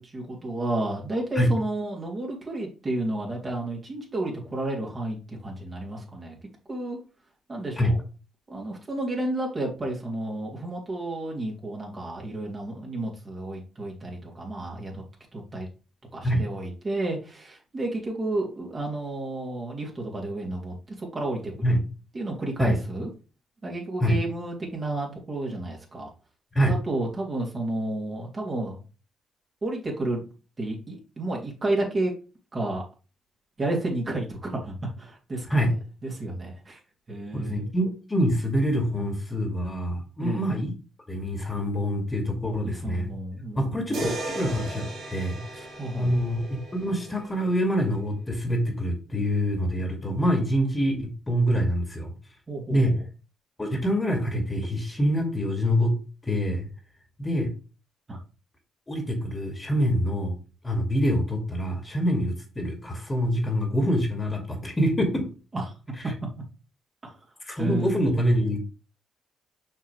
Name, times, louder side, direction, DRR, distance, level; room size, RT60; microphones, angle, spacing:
voice 1, 0.0-6.4 6.7-7.0 7.5-8.0 8.5-15.0 15.3-15.7 16.1-21.8 22.1-23.1 23.6-26.1 26.5-28.8 29.6-30.2 30.6-32.1 32.5-32.8 33.6-35.7 36.0-36.8 37.1-37.7 40.2-40.5 42.6-44.0 45.8-46.2 52.5-53.0 58.1-58.2 65.5-65.7 67.0-67.2 67.6-68.1, right 2 dB, 35° right, -1 dB, 2.5 m, -31 dB
voice 2, 37.3-40.7 41.1-43.1 43.6-45.7 45.9-46.4 46.7-52.1 52.7-52.9 53.6-56.0 56.2-56.7 57.2-57.5 58.9-60.3 60.6-65.3 67.4-68.6, equal, 20° left, 3 dB, 2.2 m, -25 dB
sound 1, 43.9-48.0, right 2 dB, 70° right, 2.9 m, -37 dB
5.9 x 5.7 x 3.2 m, 0.33 s
hypercardioid pair, 45°, 0 cm